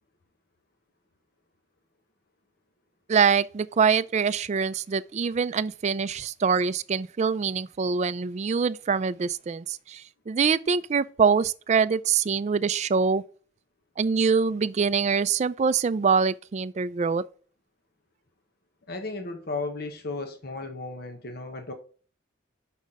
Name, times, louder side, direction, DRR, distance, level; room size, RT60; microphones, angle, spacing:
voice 1, 3.1-13.2 14.0-17.2, right 5 dB, 35° right, 0.3 m, -24 dB
voice 2, 18.9-21.7, left 3 dB, 55° left, 1.1 m, -34 dB
6.2 x 5.8 x 3.7 m
head